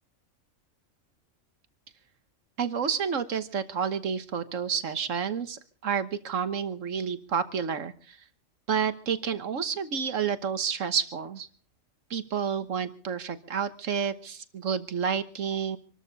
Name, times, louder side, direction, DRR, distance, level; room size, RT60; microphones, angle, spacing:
voice 1, 2.6-8.2 8.7-11.5 12.1-15.8, right 7 dB, 70° right, 11 dB, 1.5 m, -30 dB
26.0 x 13.0 x 4.0 m, 0.42 s
omnidirectional pair, 1.4 m